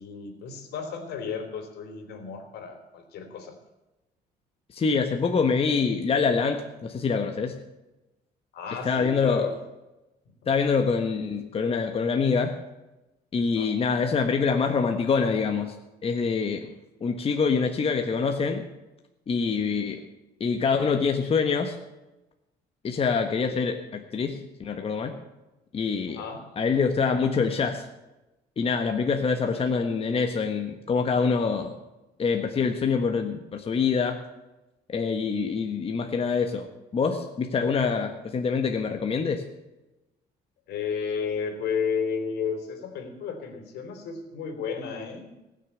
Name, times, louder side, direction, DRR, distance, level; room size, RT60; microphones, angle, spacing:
voice 1, 0.0-3.6 8.5-9.5 10.4-10.5 13.5-13.7 19.5-19.8 26.1-26.5 29.5-29.6 40.7-45.3, left 6 dB, 75° left, 6 dB, 3.3 m, -33 dB
voice 2, 4.7-7.6 8.8-9.5 10.5-12.6 13.3-15.7 16.0-16.7 17.0-18.6 19.3-20.0 20.4-21.8 22.8-25.1 25.7-26.2 26.6-27.9 28.6-31.7 32.2-34.2 34.9-36.7 36.9-39.4, left 5 dB, 35° left, 4 dB, 1.3 m, -25 dB
19.0 x 6.7 x 8.4 m, 1.0 s
cardioid pair, 110°, 17 cm